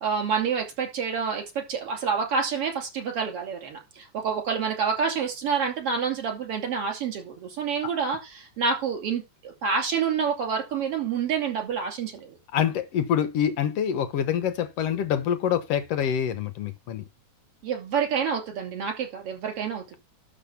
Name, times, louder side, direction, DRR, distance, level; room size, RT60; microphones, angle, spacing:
voice 1, 0.0-12.4 17.6-19.8, right 6 dB, 55° right, 3.6 m, -28 dB
voice 2, 12.5-17.0, left 9 dB, 65° left, 1.9 m, -26 dB
12.5 x 4.5 x 5.7 m
omnidirectional pair, 3.3 m